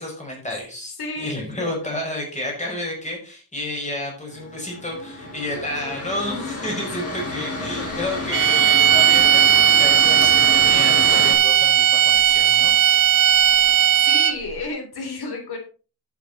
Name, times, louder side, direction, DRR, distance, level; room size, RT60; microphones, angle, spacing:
voice 1, 0.0-12.7, left 1 dB, 20° left, -1 dB, 5.5 m, -31 dB
voice 2, 1.0-1.3 1.6-1.7 14.0-15.6, left 3 dB, 85° left, 3 dB, 3.6 m, -31 dB
Mechanical fan, 4.3-11.3, left 2 dB, 40° left, 4.3 m, -30 dB
sound 1, 8.3-14.5, right 11 dB, 60° right, 0.5 m, -16 dB
10.5 x 9.3 x 4.1 m, 0.36 s
wide cardioid pair, 170°, 37 cm